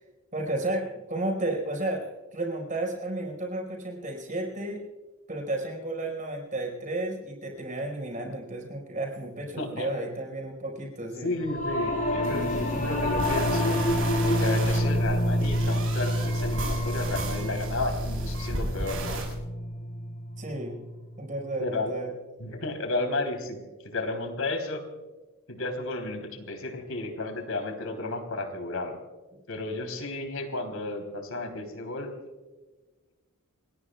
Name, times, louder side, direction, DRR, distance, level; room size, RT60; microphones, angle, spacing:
voice 1, 0.3-4.8 5.3-11.4 20.4-20.8 21.2-22.1, right 2 dB, 35° right, 1 dB, 5.1 m, -32 dB
voice 2, 9.6-9.9 11.2-13.8 14.2-19.2 21.6-21.9 22.4-23.6 23.8-24.8 25.5-28.9 29.5-32.1, left 2 dB, 80° left, 5 dB, 3.4 m, -33 dB
Singing / Musical instrument, 11.4-21.0, equal, 40° left, 6.0 m, -28 dB
sound 1, 12.2-19.3, right 1 dB, 65° right, 7.1 m, -35 dB
28.0 x 21.0 x 2.3 m, 1.2 s
head